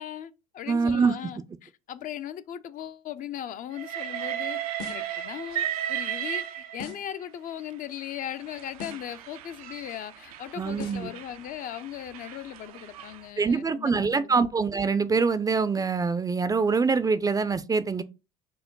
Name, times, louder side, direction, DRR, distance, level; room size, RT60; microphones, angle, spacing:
voice 1, 0.0-4.6 4.9-14.5, left 10 dB, 45° left, 0.5 m, -38 dB
voice 2, 0.7-1.1 10.6-11.1 13.4-18.0, right 5 dB, 20° right, 0.4 m, -24 dB
Train, 3.7-7.1 8.0-13.2, right 11 dB, 85° right, 0.5 m, -35 dB
sound 1, 4.8-5.2 6.8-7.2 8.8-9.2 10.8-11.2, left 5 dB, 65° left, 1.0 m, -41 dB
4.3 x 2.2 x 4.5 m
hypercardioid pair, 75°, 18 cm